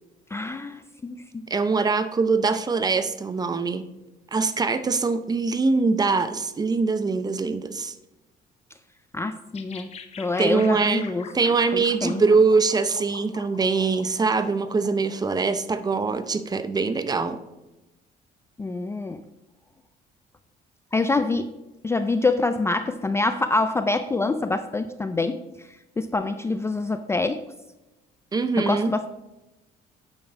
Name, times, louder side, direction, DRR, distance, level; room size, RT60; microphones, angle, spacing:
voice 1, 0.3-1.2 9.1-9.9 10.2-11.3 11.7-12.2 18.6-19.2 20.9-21.5 21.8-25.7 26.0-27.4 28.6-29.1, left 3 dB, 15° left, 9 dB, 0.4 m, -26 dB
voice 2, 1.5-3.8 4.3-7.9 10.4-11.1 11.3-17.4 28.3-28.9, right 4 dB, 25° right, 11 dB, 0.6 m, -23 dB
sound 1, 9.5-15.8, left 6 dB, 40° left, 0.8 m, -43 dB
8.9 x 6.0 x 3.9 m, 1.0 s
cardioid pair, 110°, 17 cm